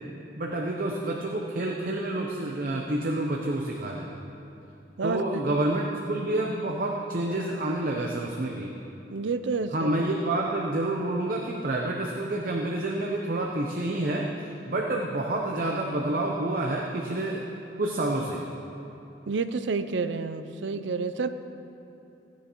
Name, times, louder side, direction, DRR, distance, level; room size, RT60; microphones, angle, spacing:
voice 1, 0.4-4.1 5.0-8.7 9.7-14.3 14.7-17.4 17.8-18.4, right 1 dB, 50° right, -1 dB, 0.8 m, -28 dB
voice 2, 9.1-9.9 19.3-21.3, right 4 dB, 80° right, 10 dB, 0.5 m, -29 dB
16.5 x 10.0 x 3.1 m, 2.9 s
head